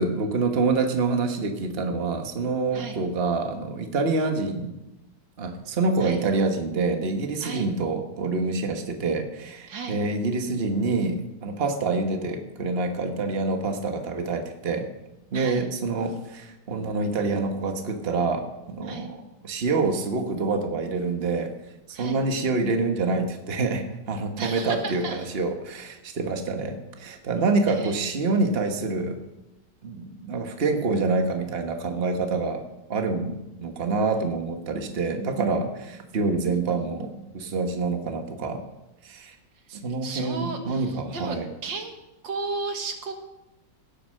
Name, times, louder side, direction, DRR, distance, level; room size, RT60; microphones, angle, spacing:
voice 1, 0.0-4.7 5.4-14.9 15.3-19.2 19.4-21.5 22.0-29.2 29.8-32.6 32.9-38.6 39.0-39.3 39.7-41.5, right 3 dB, 35° right, 4 dB, 1.5 m, -26 dB
voice 2, 9.7-10.0 15.3-15.7 18.8-19.1 21.9-22.2 24.4-25.3 27.7-28.0 36.3-37.3 40.0-41.9 42.2-43.1, right 4 dB, 85° right, 4 dB, 2.4 m, -35 dB
17.0 x 8.5 x 6.5 m, 0.95 s
omnidirectional pair, 2.0 m